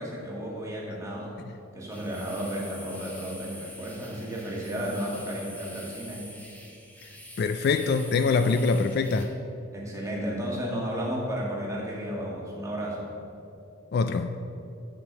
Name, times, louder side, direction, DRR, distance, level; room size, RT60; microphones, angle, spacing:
voice 1, 0.0-1.4 1.7-6.3 9.7-13.1, equal, 15° right, -4 dB, 1.6 m, -33 dB
sound 1, 1.9-9.3, left 1 dB, 5° left, 0.9 m, -45 dB
voice 2, 7.4-9.3 13.9-14.3, left 4 dB, 50° left, 9 dB, 0.3 m, -24 dB
6.5 x 6.0 x 7.4 m, 2.6 s
head